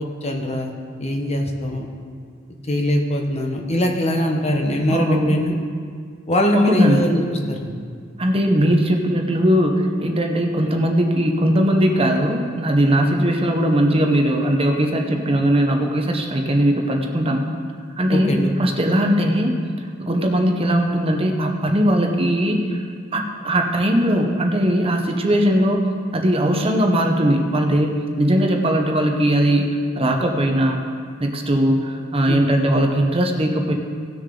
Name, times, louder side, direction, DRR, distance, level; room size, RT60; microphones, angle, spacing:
voice 1, 0.0-1.9 2.7-5.6 6.3-7.7 18.1-18.5 32.3-32.7, equal, 35° left, 2 dB, 1.1 m, -22 dB
voice 2, 4.9-5.4 6.5-7.0 8.2-17.5 18.0-18.3 18.6-19.5 20.0-22.8 23.1-25.8 26.1-29.7 30.0-30.8 31.2-33.7, equal, 30° right, 2 dB, 0.9 m, -19 dB
17.5 x 6.6 x 3.8 m, 2.1 s
head